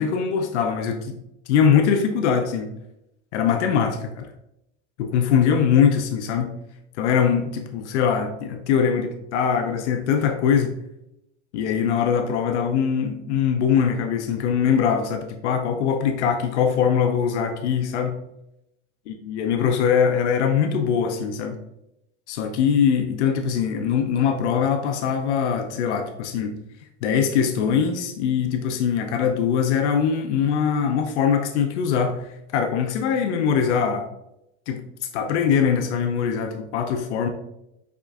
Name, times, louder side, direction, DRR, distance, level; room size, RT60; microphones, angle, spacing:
voice 1, 0.0-2.7 3.3-4.3 5.0-6.6 7.0-10.7 11.5-18.2 19.1-21.6 22.3-26.5 27.0-32.2 32.5-34.1 34.7-34.9 35.1-37.3, left 7 dB, 85° left, 4 dB, 0.6 m, -22 dB
5.6 x 3.7 x 2.4 m, 0.86 s
supercardioid pair, 100°, 34 cm